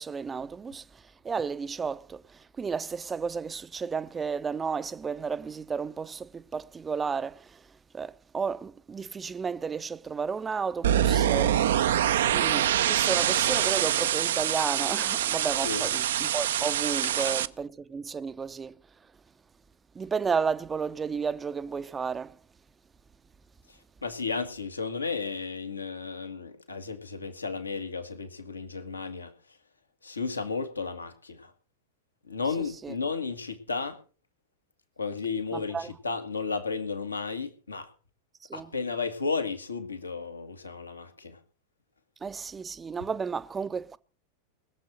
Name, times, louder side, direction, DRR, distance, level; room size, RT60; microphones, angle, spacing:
voice 1, 0.0-7.7 7.9-18.7 19.9-22.4 32.8-32.9 35.5-35.9 38.5-38.7 42.2-44.0, right 5 dB, 15° right, 0.6 m, -33 dB
sound 1, 10.8-17.5, right 11 dB, 60° right, 0.6 m, -25 dB
voice 2, 17.0-17.3 23.7-29.3 30.0-31.5 32.3-34.0 35.0-37.9 38.5-41.4, left 4 dB, 80° left, 1.8 m, -33 dB
20.5 x 7.6 x 6.3 m
figure-of-eight pair, 90°, 0 cm